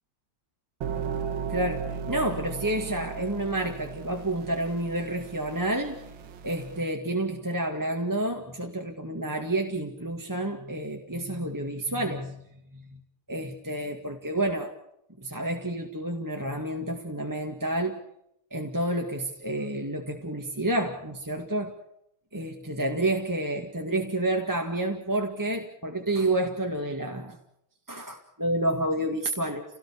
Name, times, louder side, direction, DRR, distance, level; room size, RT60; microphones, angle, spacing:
sound 1, 0.8-6.8, right 6 dB, 65° right, 1.9 m, -36 dB
voice 1, 1.5-6.0 6.4-12.4 12.7-13.0 13.3-14.7 15.2-18.0 18.5-21.7 22.3-27.4 27.9-29.6, right 1 dB, 10° right, 2 dB, 1.8 m, -29 dB
29.5 x 18.5 x 7.1 m, 0.78 s
omnidirectional pair, 2.3 m